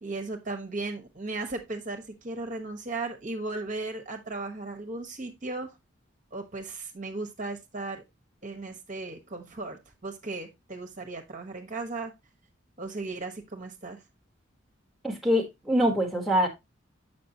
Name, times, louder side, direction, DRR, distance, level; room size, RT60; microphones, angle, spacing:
voice 1, 0.0-5.7 6.3-8.0 8.4-12.1 12.8-14.0, right 3 dB, 40° right, 1.3 m, -36 dB
voice 2, 15.0-16.5, equal, ahead, 1.3 m, -24 dB
7.8 x 6.1 x 2.8 m
head